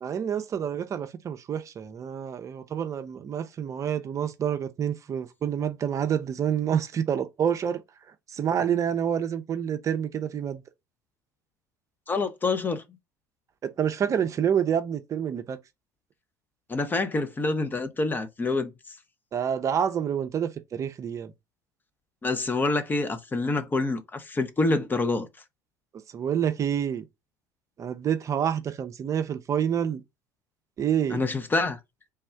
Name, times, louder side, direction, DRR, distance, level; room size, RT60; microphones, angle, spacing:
voice 1, 0.0-7.8 8.3-10.6 13.6-15.6 19.3-21.3 26.1-27.0 27.8-30.0 30.8-31.2, right 8 dB, 40° right, 0.5 m, -28 dB
voice 2, 12.1-12.8 16.7-18.7 22.2-25.3 31.1-31.8, left 3 dB, 25° left, 0.6 m, -26 dB
3.4 x 2.3 x 4.3 m
hypercardioid pair, 75°, 8 cm